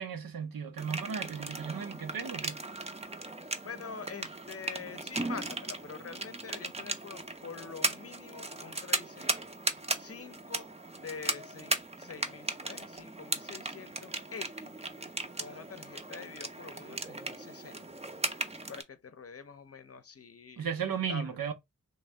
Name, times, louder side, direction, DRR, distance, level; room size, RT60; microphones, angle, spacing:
voice 1, 0.0-2.6 20.6-21.5, right 7 dB, 85° right, 0.7 m, -35 dB
sound 1, 0.8-18.8, right 2 dB, 20° right, 0.5 m, -37 dB
voice 2, 3.6-9.4 10.0-14.7 15.4-17.8 18.7-20.7 21.1-21.4, left 5 dB, 45° left, 0.6 m, -46 dB
3.2 x 2.6 x 3.3 m
wide cardioid pair, 65°, 34 cm